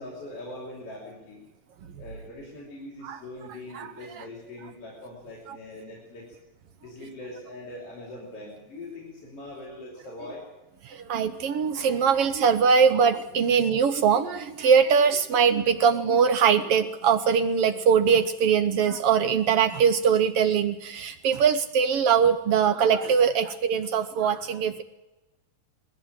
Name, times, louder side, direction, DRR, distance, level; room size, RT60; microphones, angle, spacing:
voice 1, 0.0-1.5 2.0-6.3 6.8-10.4, left 1 dB, 45° left, -4 dB, 6.2 m, -42 dB
voice 2, 3.7-4.2 10.8-24.8, right 6 dB, 70° right, 10 dB, 1.4 m, -22 dB
20.0 x 16.0 x 9.0 m, 1.0 s
omnidirectional pair, 3.7 m